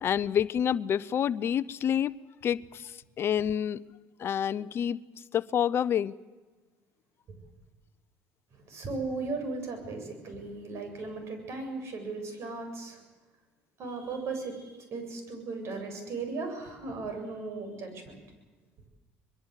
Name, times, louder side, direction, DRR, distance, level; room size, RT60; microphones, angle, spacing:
voice 1, 0.0-2.2 2.4-2.9 3.2-3.8 4.2-5.0 5.3-6.1, left 9 dB, 50° left, 17 dB, 0.7 m, -28 dB
voice 2, 8.5-13.0 13.8-18.2, right 3 dB, 55° right, 6 dB, 7.8 m, -37 dB
24.0 x 22.0 x 8.2 m, 1.2 s
supercardioid pair, 80°, 5 cm